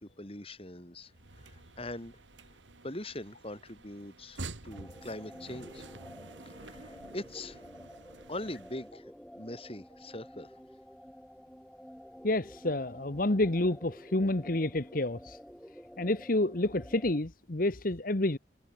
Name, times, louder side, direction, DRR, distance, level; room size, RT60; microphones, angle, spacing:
voice 1, 0.0-1.1 1.4-2.2 2.8-5.9 6.4-7.6 8.3-10.5, left 1 dB, 30° left, 4.6 m, -42 dB
sound 1, 1.1-9.0, right 2 dB, 85° right, 2.5 m, -49 dB
sound 2, 4.7-17.2, equal, 5° left, 2.0 m, -51 dB
voice 2, 12.2-15.4 16.0-18.4, left 2 dB, 50° left, 1.3 m, -29 dB
head